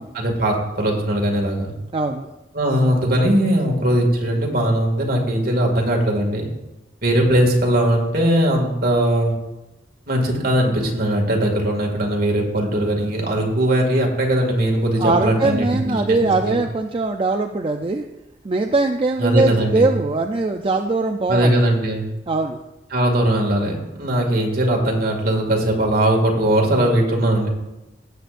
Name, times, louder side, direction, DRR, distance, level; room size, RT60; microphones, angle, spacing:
voice 1, 0.1-1.7 2.5-6.5 7.0-9.4 10.1-16.6 19.2-19.9 21.3-22.1 22.9-27.5, right 1 dB, 55° right, 1 dB, 2.2 m, -19 dB
voice 2, 1.9-2.3 15.0-18.0 18.4-21.6 22.3-22.6, right 3 dB, 30° right, 4 dB, 0.4 m, -21 dB
16.0 x 8.1 x 2.5 m, 1.0 s
head